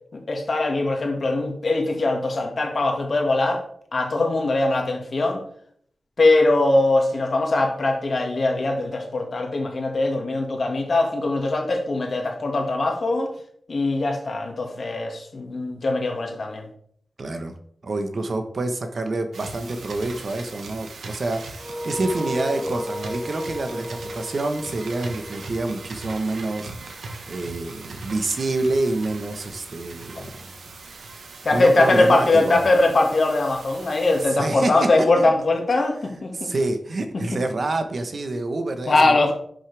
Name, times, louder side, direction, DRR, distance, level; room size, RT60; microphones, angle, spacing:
voice 1, 0.1-3.6 3.9-5.4 6.2-13.3 13.7-16.7 30.2-30.3 31.4-36.5 37.1-37.2 38.9-39.3, left 2 dB, 55° left, 2 dB, 2.0 m, -21 dB
voice 2, 17.2-17.5 17.8-26.7 27.3-30.5 31.5-32.6 34.4-34.9 35.2-35.3 36.3-39.1, right 2 dB, 55° right, 7 dB, 1.2 m, -27 dB
sound 1, 19.3-34.3, right 3 dB, 90° right, 1.4 m, -40 dB
sound 2, 21.6-26.4, equal, 5° right, 0.5 m, -33 dB
11.0 x 6.4 x 3.4 m, 0.64 s
wide cardioid pair, 110°, 0 cm